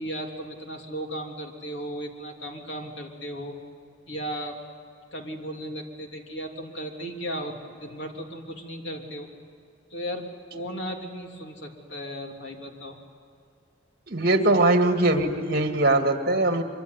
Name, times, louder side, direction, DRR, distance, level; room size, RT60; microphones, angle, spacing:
voice 1, 0.0-3.6 4.1-4.6 5.1-9.3 9.9-10.2 10.5-13.0, equal, 70° left, 2 dB, 3.3 m, -35 dB
voice 2, 14.1-16.6, right 2 dB, 55° right, 5 dB, 2.2 m, -21 dB
24.5 x 24.0 x 9.7 m, 2.3 s
head